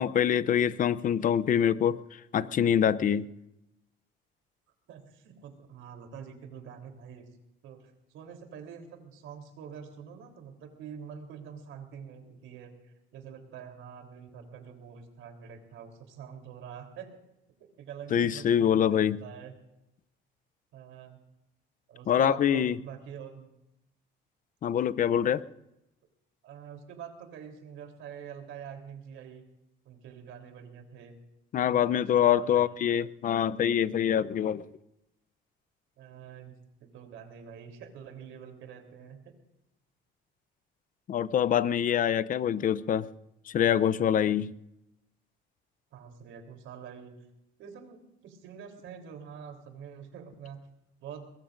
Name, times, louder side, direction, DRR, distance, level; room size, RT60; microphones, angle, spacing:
voice 1, 0.0-2.0 2.3-3.3 18.1-19.2 22.1-22.8 24.6-25.4 31.5-34.6 41.1-43.1 43.5-44.5, left 9 dB, 40° left, 0.6 m, -25 dB
voice 2, 4.9-7.2 7.6-17.2 17.6-19.5 20.7-21.2 21.9-23.5 26.4-29.4 29.9-31.2 31.7-32.8 36.0-39.3 45.9-47.1 47.6-50.6 51.0-51.3, right 7 dB, 75° right, 3.6 m, -46 dB
23.0 x 21.5 x 2.6 m
cardioid pair, 140°, 21 cm